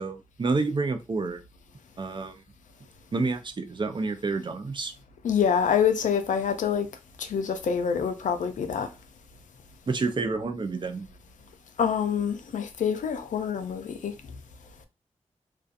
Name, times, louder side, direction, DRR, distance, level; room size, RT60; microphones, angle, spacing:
voice 1, 0.0-1.4 2.0-2.4 3.1-4.9 9.9-11.1, right 3 dB, 40° right, 0.4 m, -29 dB
voice 2, 5.2-6.9 7.2-8.9 11.8-14.1, left 7 dB, 85° left, 0.4 m, -26 dB
2.6 x 2.3 x 2.4 m
cardioid pair, 65°, 13 cm